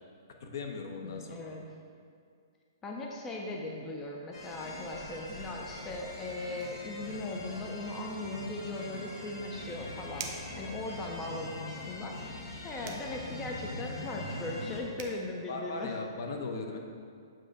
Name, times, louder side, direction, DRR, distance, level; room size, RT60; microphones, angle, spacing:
voice 1, 0.4-1.6 15.5-16.8, left 3 dB, 60° left, 3 dB, 0.7 m, -38 dB
voice 2, 1.0-1.6 2.8-16.0, left 2 dB, 15° left, -1 dB, 0.4 m, -39 dB
sound 1, 4.3-14.8, left 2 dB, 90° left, 1.2 m, -42 dB
sound 2, 10.2-10.6 12.8-13.1 14.6-14.7 15.0-15.2, right 5 dB, 40° right, 0.6 m, -41 dB
7.5 x 2.5 x 5.1 m, 2.3 s
hypercardioid pair, 160°, 2 cm